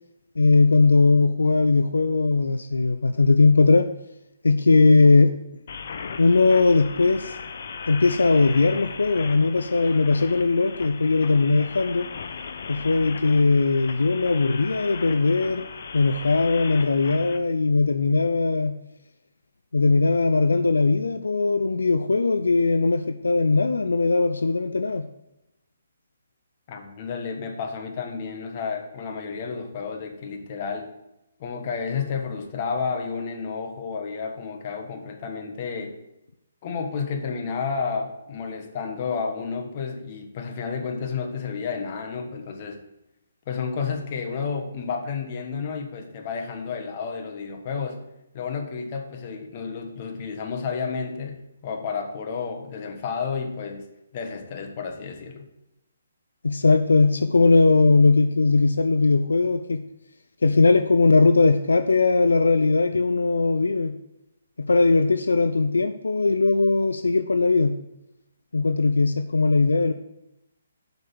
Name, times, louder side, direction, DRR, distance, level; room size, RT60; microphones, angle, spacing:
voice 1, 0.4-3.9 4.4-5.3 6.2-7.4 7.9-12.1 12.7-15.6 15.9-18.8 19.7-25.1 56.4-59.8 60.4-64.0 64.6-67.8 68.5-69.9, left 3 dB, 80° left, 9 dB, 0.4 m, -19 dB
sound 1, 5.7-17.4, left 5 dB, 60° left, 0.8 m, -37 dB
voice 2, 26.7-30.9 31.4-36.0 36.6-42.8 43.5-48.0 48.3-55.5, left 5 dB, 40° left, 4 dB, 1.4 m, -31 dB
7.7 x 5.3 x 6.1 m, 0.89 s
figure-of-eight pair, 140°, 0 cm